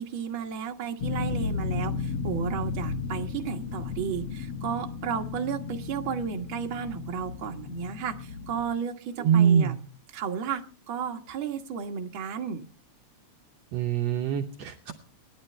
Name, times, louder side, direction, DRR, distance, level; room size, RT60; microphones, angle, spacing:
voice 1, 0.0-9.7 10.1-12.7, right 7 dB, 50° right, 3 dB, 1.9 m, -33 dB
sound 1, 1.0-8.6, left 5 dB, 50° left, 2.5 m, -34 dB
voice 2, 9.2-9.8 13.7-14.9, right 8 dB, 65° right, 4 dB, 2.0 m, -23 dB
27.0 x 11.5 x 3.3 m, 0.38 s
omnidirectional pair, 3.5 m